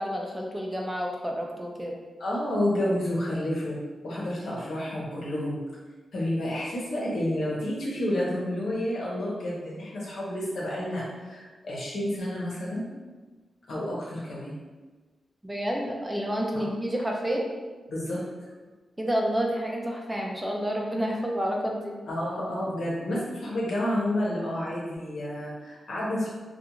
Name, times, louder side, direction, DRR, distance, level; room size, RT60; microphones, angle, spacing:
voice 1, 0.0-2.0 15.4-17.5 19.0-22.0, equal, 10° right, -1 dB, 0.4 m, -29 dB
voice 2, 2.2-3.8 4.0-5.6 6.1-12.8 13.7-14.6 17.9-18.2 22.1-26.3, left 1 dB, 80° left, -6 dB, 0.9 m, -30 dB
2.4 x 2.3 x 2.9 m, 1.3 s
wide cardioid pair, 105°, 0 cm